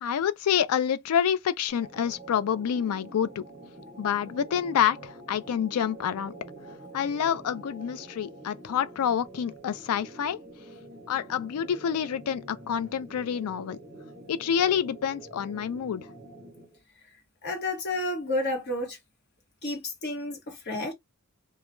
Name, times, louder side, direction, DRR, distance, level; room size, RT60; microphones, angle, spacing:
voice 1, 0.0-3.4 4.0-6.3 6.9-10.4 11.1-13.8 14.3-16.1, left 8 dB, 70° left, 0.3 m, -27 dB
sound 1, 1.7-16.8, right 2 dB, 15° right, 0.6 m, -46 dB
voice 2, 17.4-19.0 19.6-20.9, left 1 dB, 50° left, 1.1 m, -31 dB
2.3 x 2.1 x 2.9 m
head